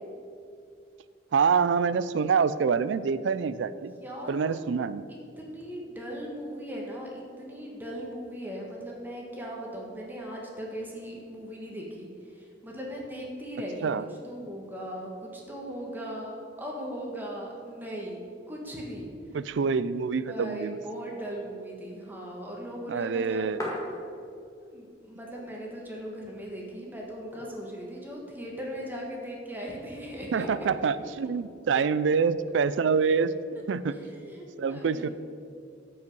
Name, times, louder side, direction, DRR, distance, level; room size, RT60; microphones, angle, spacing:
voice 1, 1.3-3.9 4.3-5.0 13.8-14.0 19.3-20.8 22.9-23.6 30.3-33.3 33.7-33.9 34.6-35.1, right 5 dB, 75° right, 15 dB, 0.4 m, -26 dB
voice 2, 4.0-4.6 5.1-19.1 20.2-23.5 24.6-30.5 33.9-35.1, equal, 10° right, -2 dB, 1.5 m, -39 dB
sound 1, 23.6-24.6 24.9-25.0 25.2-26.0 26.5-26.6 27.1-27.9 28.6-29.2 30.4-31.0 32.1-32.7, left 1 dB, 20° left, 1.9 m, -39 dB
13.5 x 5.4 x 5.4 m, 2.4 s
head